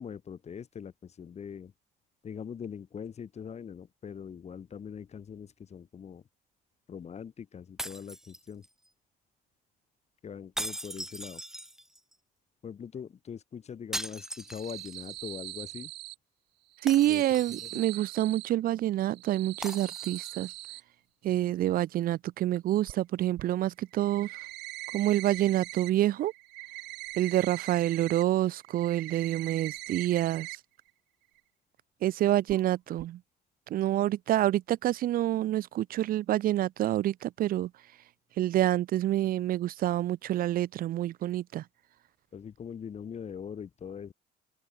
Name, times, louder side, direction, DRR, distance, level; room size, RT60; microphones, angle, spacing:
voice 1, 0.0-1.7 2.2-6.2 6.9-8.7 10.2-11.4 12.6-15.9 17.1-17.8 42.3-44.1, left 7 dB, 40° left, 3.7 m, -42 dB
sound 1, 7.8-8.9 10.6-12.1 13.9-15.1 15.5-15.6 16.9-17.9 19.6-20.6, right 1 dB, 5° right, 0.7 m, -40 dB
sound 2, 14.4-16.2 16.7-18.5 19.0-20.8 22.9-23.0 23.4-23.5 23.9-25.9 26.2-28.2 28.6-30.6 30.9-31.0 31.4-31.5 32.5-32.7 33.0-33.1, right 19 dB, 85° right, 1.3 m, -42 dB
voice 2, 16.8-20.5 21.2-24.3 24.9-26.3 27.2-30.5 32.0-33.2 33.7-37.7 38.4-41.6, right 13 dB, 60° right, 0.6 m, -27 dB
cardioid pair, 110°, 17 cm